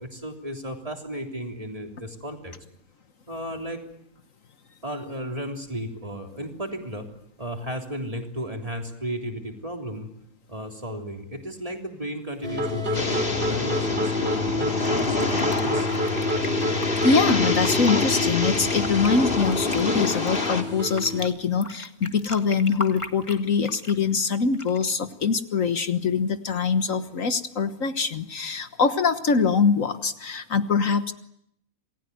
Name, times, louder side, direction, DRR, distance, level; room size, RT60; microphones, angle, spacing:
voice 1, 0.0-2.5 3.3-3.8 4.8-7.1 7.4-10.1 10.5-15.9, equal, 25° right, 3 dB, 3.6 m, -34 dB
sound 1, 12.4-21.2, left 1 dB, 40° right, 5.4 m, -28 dB
sound 2, 12.9-20.6, left 3 dB, 40° left, 2.6 m, -27 dB
Fill (with liquid), 14.9-16.9 17.5-18.1 18.4-21.3 21.6-24.0 24.5-24.9, left 2 dB, 20° left, 1.8 m, -37 dB
voice 2, 17.0-31.1, left 5 dB, 65° left, 9 dB, 1.7 m, -23 dB
28.0 x 20.0 x 9.4 m, 0.75 s
omnidirectional pair, 1.5 m